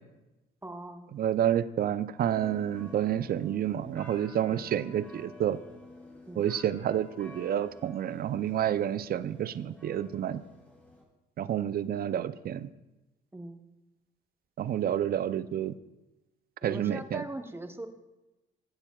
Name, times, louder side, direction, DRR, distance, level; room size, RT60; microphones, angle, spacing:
voice 1, 0.6-1.1 4.5-4.7 6.3-6.4 13.3-13.6 16.6-17.9, right 1 dB, 10° right, 7 dB, 0.8 m, -40 dB
voice 2, 1.1-5.6 6.4-10.4 11.4-12.7 14.6-15.7 16.6-17.2, right 10 dB, 50° right, 15 dB, 0.4 m, -29 dB
sound 1, 2.3-11.0, left 2 dB, 10° left, 2.7 m, -51 dB
14.5 x 8.9 x 2.3 m, 1.0 s
cardioid pair, 90°, 20 cm